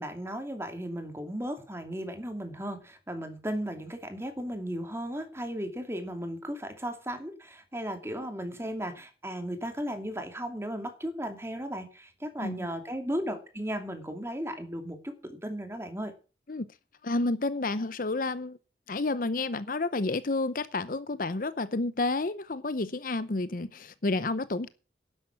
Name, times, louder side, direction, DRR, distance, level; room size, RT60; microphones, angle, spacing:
voice 1, 0.0-16.1, equal, 15° right, 2.5 m, -35 dB
voice 2, 17.0-18.6 18.9-24.7, left 2 dB, 50° left, 0.7 m, -30 dB
12.0 x 11.0 x 5.9 m
head